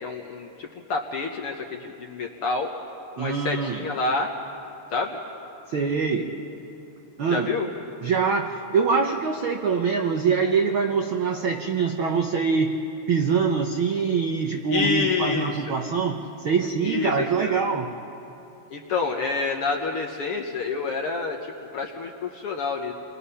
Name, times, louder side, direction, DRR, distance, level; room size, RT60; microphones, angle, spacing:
voice 1, 0.0-2.7 3.2-4.3 4.9-5.2 7.3-7.7 14.7-15.6 16.8-17.6 18.7-22.9, left 4 dB, 60° left, 2 dB, 1.5 m, -28 dB
voice 2, 3.2-3.9 5.7-6.4 7.2-7.5 8.0-12.8 13.1-17.9, right 5 dB, 85° right, 3 dB, 1.1 m, -24 dB
29.0 x 22.0 x 5.6 m, 2.8 s
omnidirectional pair, 3.8 m